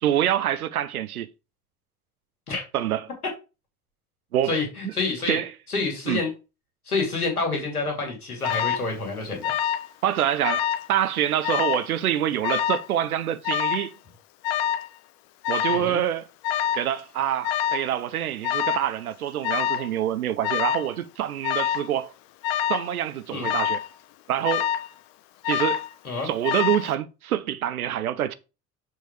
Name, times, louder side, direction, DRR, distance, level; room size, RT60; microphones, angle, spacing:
voice 1, 0.0-1.3 2.7-3.1 4.3-4.6 4.8-4.9 5.3-5.5 6.1-6.2 10.0-13.9 15.5-16.3 16.8-22.1 22.7-23.8 24.3-24.7 25.5-25.8 26.2-28.3, right 11 dB, 75° right, 0.8 m, -26 dB
voice 2, 4.5-5.4 5.7-6.3 6.9-9.5 15.7-16.0 23.3-23.5 26.0-26.3, left 3 dB, 85° left, 2.5 m, -28 dB
Alarm, 8.4-8.9 9.4-9.9 10.2-10.9 11.4-11.9 12.4-12.9 13.4-13.9 14.4-14.9 15.4-15.9 16.4-16.9 17.4-17.9 18.4-18.9 19.4-19.9 20.4-20.9 21.4-21.9 22.4-22.9 23.4-23.9 24.4-24.9 25.4-25.9 26.4-26.9, left 10 dB, 55° left, 0.9 m, -26 dB
6.7 x 4.7 x 4.9 m
figure-of-eight pair, 65°, 43 cm